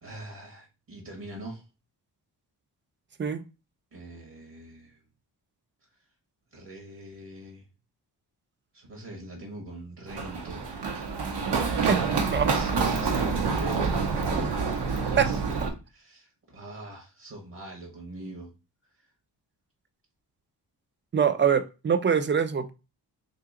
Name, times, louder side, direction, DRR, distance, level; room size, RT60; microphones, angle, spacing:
voice 1, 0.0-1.6 3.9-5.0 6.5-7.6 8.7-10.6 12.5-14.6 15.1-15.5 15.9-18.5, right 1 dB, 55° right, 0 dB, 1.2 m, -42 dB
Run, 10.1-15.7, right 5 dB, 75° right, 0.8 m, -27 dB
voice 2, 21.1-22.7, right 7 dB, 30° right, 11 dB, 0.4 m, -23 dB
2.8 x 2.7 x 3.7 m, 0.29 s
cardioid pair, 85°, 41 cm